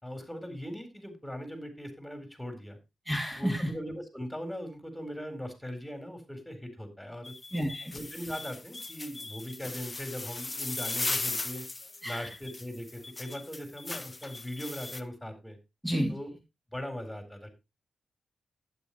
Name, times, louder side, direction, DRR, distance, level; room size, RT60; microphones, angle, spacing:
voice 1, 0.0-2.8 3.4-7.3 7.9-11.7 12.0-15.6 16.1-16.3 16.7-17.5, equal, 5° left, 8 dB, 4.1 m, -40 dB
voice 2, 3.0-3.7 7.5-7.9 12.0-12.3 15.8-16.1, equal, 15° right, 0 dB, 3.0 m, -30 dB
sound 1, 7.2-15.0, left 3 dB, 30° left, 1.0 m, -38 dB
12.0 x 9.1 x 3.1 m, 0.24 s
supercardioid pair, 50°, 0 cm